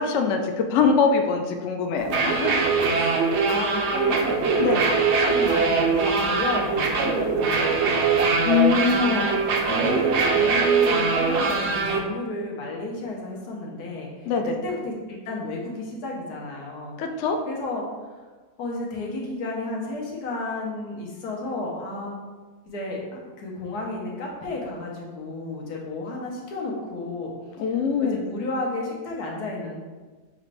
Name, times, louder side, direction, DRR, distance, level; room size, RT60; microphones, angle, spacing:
voice 1, 0.0-2.2 4.6-4.8 8.4-9.3 14.3-14.6 17.0-17.4 27.6-28.2, left 5 dB, 70° left, 4 dB, 0.7 m, -22 dB
sound 1, 2.0-12.0, right 4 dB, 65° right, 0.7 m, -22 dB
voice 2, 2.2-2.6 2.9-4.5 4.7-8.3 8.8-9.3 9.6-17.0 17.5-17.8 18.6-22.2 22.7-27.3 28.0-29.8, left 2 dB, 85° left, -2 dB, 1.5 m, -32 dB
6.4 x 2.5 x 3.2 m, 1.3 s
omnidirectional pair, 1.6 m